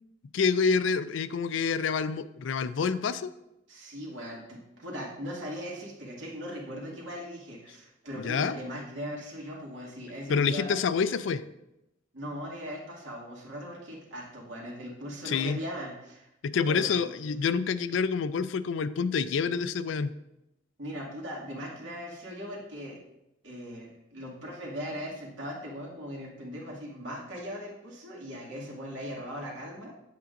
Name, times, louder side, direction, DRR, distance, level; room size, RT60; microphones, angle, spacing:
voice 1, 0.3-3.3 8.2-8.6 10.3-11.4 15.2-15.6 16.4-20.1, left 5 dB, 70° left, 14 dB, 0.4 m, -27 dB
voice 2, 3.7-10.7 12.1-16.3 16.6-17.1 20.8-23.0 23.4-29.9, equal, 85° right, -4 dB, 2.2 m, -39 dB
8.4 x 7.6 x 2.6 m, 0.89 s
head